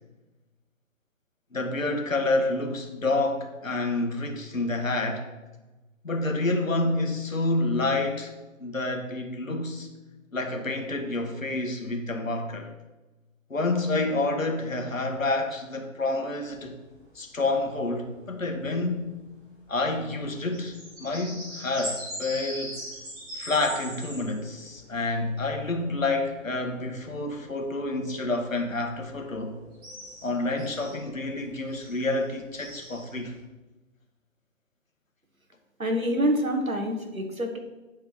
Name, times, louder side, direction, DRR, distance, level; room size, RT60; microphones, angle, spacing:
voice 1, 1.5-5.3 6.0-8.3 8.6-9.9 10.3-12.7 13.5-16.8 17.1-19.1 19.7-20.7 21.0-22.8 23.3-29.6 30.2-33.3, left 2 dB, 75° left, 3 dB, 1.6 m, -28 dB
sound 1, 16.4-33.4, equal, 10° right, 1.7 m, -43 dB
voice 2, 35.8-37.6, equal, 90° right, 4 dB, 1.6 m, -26 dB
8.9 x 4.6 x 6.0 m, 1.1 s
figure-of-eight pair, 140°, 40 cm